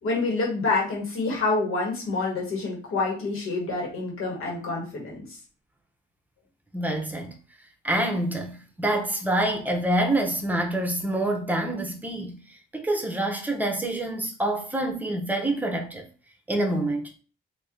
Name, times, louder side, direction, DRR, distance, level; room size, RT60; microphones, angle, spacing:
voice 1, 0.0-5.4, left 3 dB, 85° left, 1.6 m, -27 dB
voice 2, 6.7-7.4 7.8-12.4 12.7-16.1 16.5-17.1, right 1 dB, 10° right, 0.9 m, -26 dB
3.0 x 2.8 x 3.7 m
cardioid pair, 90°, 21 cm